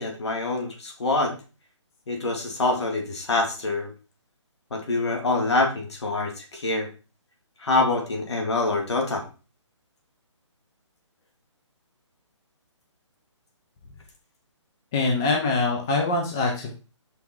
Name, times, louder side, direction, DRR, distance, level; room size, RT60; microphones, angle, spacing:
voice 1, 0.0-1.3 2.1-3.9 4.7-6.9 7.6-9.3, left 2 dB, 60° left, 3 dB, 2.9 m, -25 dB
voice 2, 14.9-16.7, left 3 dB, 5° left, 1 dB, 0.3 m, -24 dB
6.0 x 5.7 x 4.5 m, 0.33 s
hypercardioid pair, 170°, 16 cm